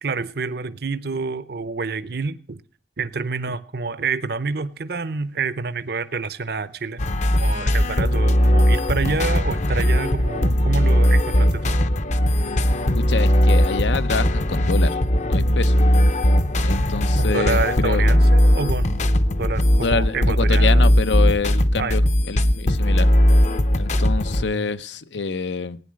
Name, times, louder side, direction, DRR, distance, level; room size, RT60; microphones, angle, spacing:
voice 1, 0.0-2.6 3.0-7.0 7.3-11.8 17.2-20.9 21.8-22.0 24.4-24.6, right 4 dB, 60° right, 0.7 m, -28 dB
sound 1, 7.0-24.4, equal, 40° left, 0.7 m, -18 dB
voice 2, 13.0-15.0 15.3-15.7 16.6-18.1 19.8-22.0 22.3-23.1 23.7-25.8, left 4 dB, 85° left, 0.7 m, -26 dB
16.5 x 9.6 x 6.3 m
head